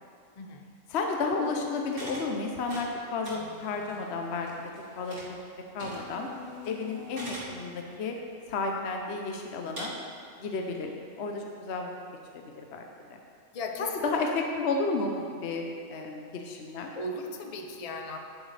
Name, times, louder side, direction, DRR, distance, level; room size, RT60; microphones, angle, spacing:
voice 1, 0.9-4.5 5.0-5.2 5.7-6.3 6.6-8.2 8.5-9.9 10.4-10.9 11.2-11.9 12.3-13.2 13.8-16.9, left 3 dB, 60° left, 2 dB, 1.0 m, -32 dB
sound 1, 1.4-2.3 2.5-5.5 5.8-7.5 8.1-8.2 8.8-8.9 9.8-9.9, left 1 dB, 70° right, 3.1 m, -43 dB
voice 2, 13.5-14.2 16.9-18.2, left 2 dB, 35° left, 4 dB, 0.6 m, -36 dB
11.0 x 10.0 x 3.3 m, 2.4 s
omnidirectional pair, 1.4 m